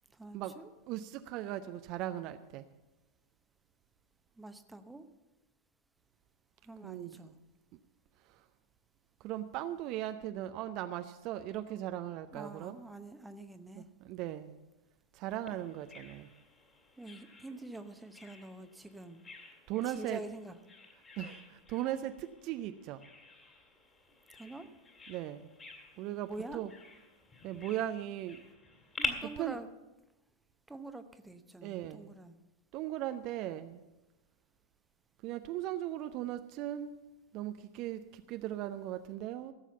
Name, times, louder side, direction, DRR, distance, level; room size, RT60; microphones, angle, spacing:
voice 1, 0.1-0.7 4.4-5.1 6.6-7.3 12.3-13.9 17.0-19.2 19.9-20.6 24.4-24.7 26.2-26.7 29.0-29.7 30.7-32.4, right 2 dB, 5° right, 9 dB, 0.8 m, -46 dB
voice 2, 0.9-2.7 6.8-7.3 8.3-8.4 9.2-12.8 13.8-14.5 15.1-16.3 19.7-20.2 21.2-23.0 25.1-25.5 26.0-26.7 27.4-28.4 29.4-29.6 31.6-32.1 32.7-33.8 35.2-37.0 37.3-39.5, right 13 dB, 40° right, 9 dB, 0.5 m, -38 dB
Bird vocalization bird call bird song, 15.5-29.1, left 4 dB, 20° left, 2.3 m, -47 dB
15.5 x 7.3 x 6.9 m, 1.1 s
figure-of-eight pair, 90°, 0 cm